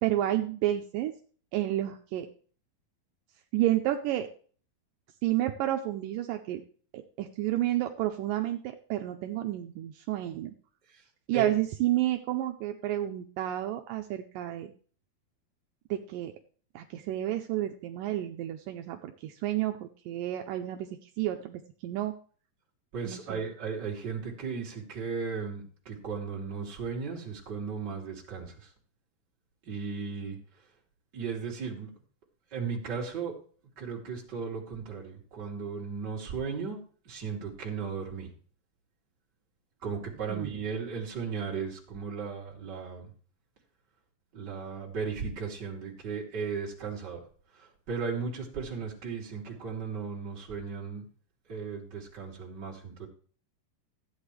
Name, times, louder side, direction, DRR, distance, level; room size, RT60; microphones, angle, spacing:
voice 1, 0.0-1.1 1.5-2.3 3.5-4.3 5.2-6.6 6.9-10.5 11.3-14.7 15.9-16.3 16.8-22.1 23.0-23.4 40.3-40.5, right 13 dB, 80° right, 5 dB, 2.2 m, -30 dB
voice 2, 22.9-28.7 29.6-30.4 31.1-31.9 32.5-33.3 33.8-38.3 39.8-43.1 44.3-47.2 47.5-51.0 51.5-53.1, right 5 dB, 30° right, -3 dB, 3.0 m, -36 dB
15.0 x 8.9 x 3.3 m, 0.43 s
omnidirectional pair, 4.1 m